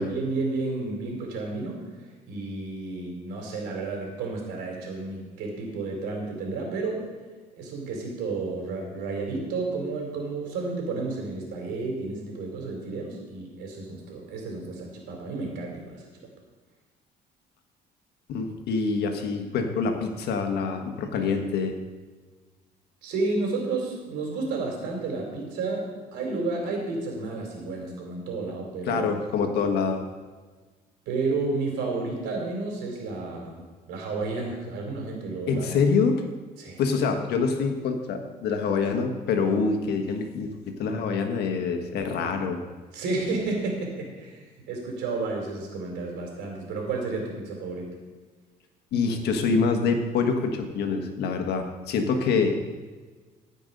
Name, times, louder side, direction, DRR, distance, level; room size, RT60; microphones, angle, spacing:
voice 1, 0.0-1.9 2.3-7.0 7.6-16.0 23.0-29.1 31.1-33.6 33.9-35.7 36.6-36.8 42.9-47.9, right 3 dB, 90° right, 1 dB, 3.1 m, -31 dB
voice 2, 18.3-21.7 28.9-30.0 35.5-36.1 36.8-42.6 48.9-52.6, left 5 dB, 75° left, 5 dB, 1.5 m, -25 dB
15.5 x 5.4 x 5.4 m, 1.4 s
cardioid pair, 110°, 17 cm